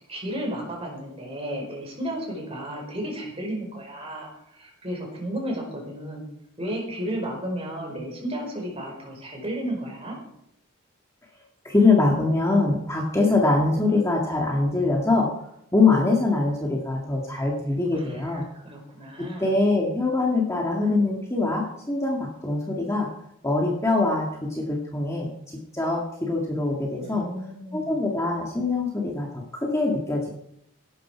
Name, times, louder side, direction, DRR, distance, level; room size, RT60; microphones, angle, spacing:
voice 1, 0.1-6.2 6.6-10.2 17.9-19.5 27.0-28.0, right 1 dB, 25° right, 0 dB, 5.1 m, -33 dB
voice 2, 11.6-15.3 15.7-18.4 19.4-23.1 23.4-27.2 27.7-30.3, left 3 dB, 15° left, -1 dB, 2.0 m, -23 dB
16.5 x 12.0 x 4.6 m, 0.77 s
head